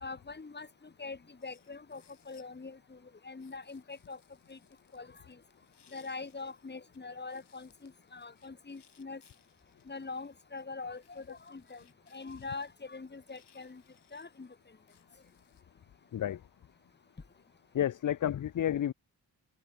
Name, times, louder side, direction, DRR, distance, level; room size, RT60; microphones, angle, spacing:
voice 1, 0.0-3.0 3.2-4.2 4.5-4.6 4.9-5.4 5.9-9.2 9.9-11.8 12.1-13.8 14.1-14.5, left 4 dB, 25° left, 1.9 m, -43 dB
sound 1, 1.4-2.7 3.4-7.0 7.3-15.6, left 8 dB, 70° left, 6.3 m, -68 dB
voice 2, 17.7-18.9, left 10 dB, 45° left, 0.6 m, -30 dB
open air
cardioid pair, 90°, 42 cm